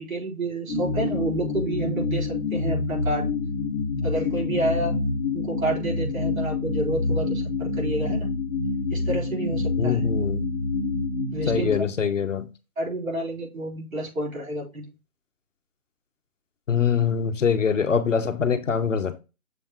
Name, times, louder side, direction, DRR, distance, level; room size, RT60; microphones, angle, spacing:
voice 1, 0.0-3.3 4.0-5.0 5.3-8.3 8.9-10.0 11.3-11.9 12.8-14.9, right 1 dB, 65° right, 4.2 m, -29 dB
sound 1, 0.7-11.8, left 3 dB, 10° right, 0.8 m, -27 dB
voice 2, 9.8-10.4 11.5-12.4 16.7-19.2, left 6 dB, 60° left, 1.0 m, -23 dB
6.9 x 3.5 x 4.4 m
hypercardioid pair, 165°, 43 cm